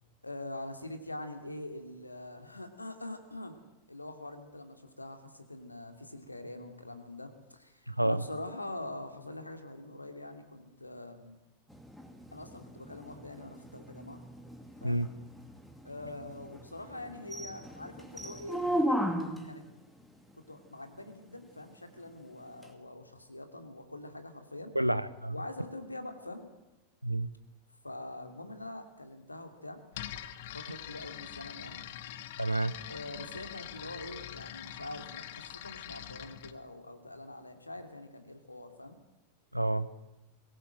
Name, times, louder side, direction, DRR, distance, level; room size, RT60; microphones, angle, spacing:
voice 1, 0.2-3.6 3.9-11.4 12.3-14.2 14.8-15.0 15.8-18.6 19.4-19.6 20.3-24.8 25.3-26.5 27.8-29.8 30.5-31.8 32.9-39.0, left 1 dB, 85° left, 6 dB, 2.6 m, -44 dB
voice 2, 7.9-8.2 14.8-15.1 24.7-25.4 27.0-27.3 32.4-32.7 39.5-39.9, right 1 dB, 90° right, 15 dB, 1.0 m, -29 dB
sound 1, 11.7-19.6 22.6-22.7, equal, ahead, 2.5 m, -36 dB
sound 2, 29.9-36.6, left 12 dB, 55° left, 1.2 m, -44 dB
22.5 x 18.0 x 7.8 m, 0.99 s
figure-of-eight pair, 90°, 0 cm